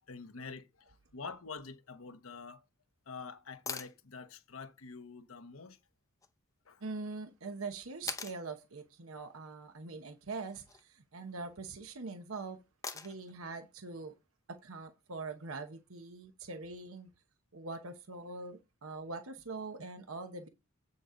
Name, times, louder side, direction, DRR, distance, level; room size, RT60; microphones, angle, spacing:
voice 1, 0.1-2.6 3.1-5.8 6.7-6.8, left 4 dB, 80° left, 1.0 m, -47 dB
sound 1, 3.7-4.0 6.2-6.3 8.1-8.4 10.4-10.8 12.8-13.3 15.4-15.5, left 5 dB, 15° left, 0.6 m, -41 dB
voice 2, 6.8-12.6 12.9-14.1 14.5-17.1 17.5-20.5, right 3 dB, 85° right, 1.0 m, -43 dB
8.3 x 6.8 x 3.8 m
head